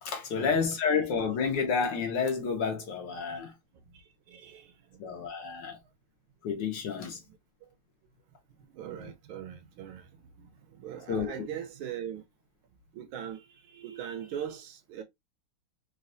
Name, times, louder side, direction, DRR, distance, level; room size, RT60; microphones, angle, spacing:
voice 1, 0.0-3.5 5.0-5.8 6.4-7.2 9.0-9.1 11.1-11.3, left 5 dB, 65° left, 1.2 m, -30 dB
voice 2, 3.9-5.0 7.3-7.4 7.6-7.7 8.7-12.2 12.9-15.0, right 9 dB, 80° right, 1.4 m, -41 dB
4.0 x 2.3 x 2.5 m
omnidirectional pair, 2.4 m